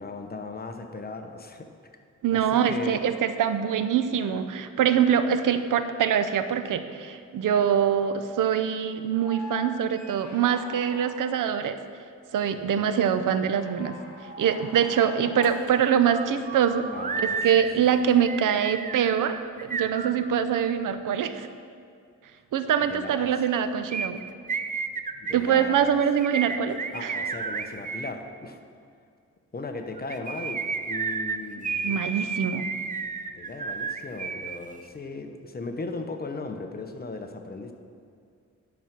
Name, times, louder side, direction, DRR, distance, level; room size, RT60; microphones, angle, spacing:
voice 1, 0.0-1.7 2.3-3.0 12.6-12.9 16.9-18.0 22.9-23.3 25.1-26.0 26.9-28.6 29.5-32.0 33.4-37.7, left 3 dB, 30° left, 5 dB, 0.9 m, -37 dB
voice 2, 2.2-11.8 12.3-14.0 14.4-16.9 17.2-21.5 22.5-24.2 25.3-27.2 31.8-32.7, right 8 dB, 85° right, 10 dB, 0.6 m, -24 dB
sound 1, 9.1-11.6 13.5-16.0 17.6-17.7, left 3 dB, 65° left, 1.3 m, -43 dB
sound 2, 15.5-15.6 15.8-20.6 23.9-28.1 30.0-34.6 34.8-34.9, right 5 dB, 25° right, 0.4 m, -32 dB
11.0 x 6.0 x 5.9 m, 2.3 s
wide cardioid pair, 110°, 31 cm